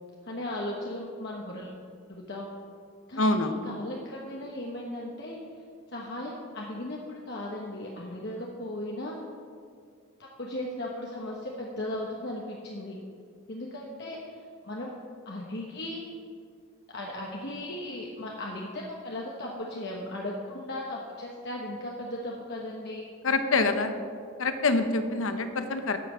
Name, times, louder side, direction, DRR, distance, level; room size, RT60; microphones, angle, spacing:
voice 1, 0.2-1.8 2.1-2.6 3.1-5.4 5.9-9.2 10.4-13.0 13.5-14.9 15.2-16.0 16.9-23.1, left 1 dB, 55° left, -2 dB, 1.1 m, -37 dB
voice 2, 3.2-3.6 23.2-23.9 24.4-26.0, left 3 dB, 80° left, 8 dB, 0.9 m, -25 dB
12.0 x 5.9 x 7.4 m, 2.2 s
head